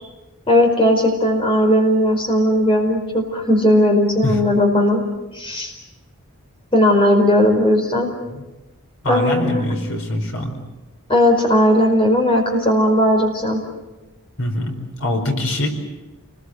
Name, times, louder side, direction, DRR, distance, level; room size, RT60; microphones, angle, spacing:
voice 1, 0.5-5.0 5.3-5.7 6.7-8.1 9.0-9.6 11.1-13.6, left 1 dB, 25° left, 3 dB, 4.6 m, -16 dB
voice 2, 9.0-10.6 14.4-15.7, left 1 dB, 65° left, 4 dB, 4.7 m, -23 dB
29.0 x 21.0 x 8.0 m, 1.1 s
head